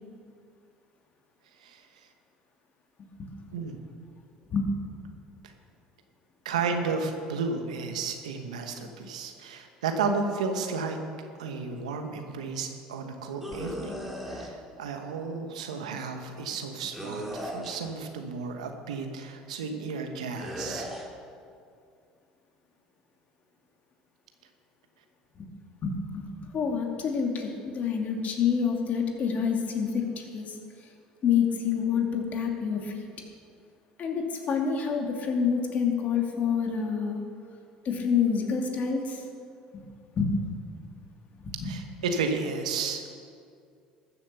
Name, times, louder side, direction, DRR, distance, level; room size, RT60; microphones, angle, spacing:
voice 1, 6.4-11.0 11.4-13.9 14.3-20.9 41.6-43.1, right 4 dB, 85° right, 5 dB, 1.3 m, -32 dB
sound 1, 13.4-14.5 16.9-18.0 20.4-21.1, equal, 5° right, 2.6 m, -37 dB
voice 2, 25.8-30.6 31.2-33.0 34.0-37.2 37.8-39.2 39.7-39.8 40.2-40.4 41.4-41.7, left 6 dB, 45° left, 2 dB, 2.4 m, -27 dB
13.5 x 7.4 x 6.8 m, 2.3 s
hypercardioid pair, 70°, 4 cm